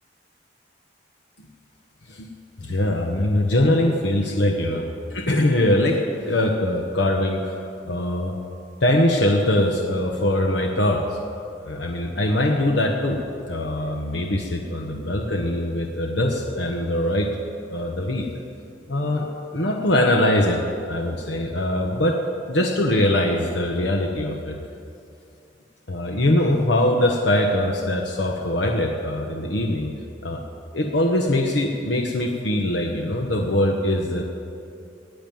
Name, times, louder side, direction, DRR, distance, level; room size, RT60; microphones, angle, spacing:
voice 1, 2.6-6.0 6.3-8.3 8.8-11.2 11.6-13.2 13.5-17.3 17.7-18.3 18.9-19.3 19.5-20.6 20.9-22.2 22.5-24.6 25.9-29.9 30.2-30.4 30.7-34.2, left 1 dB, 70° left, 1 dB, 1.2 m, -22 dB
16.0 x 8.9 x 9.3 m, 2.6 s
head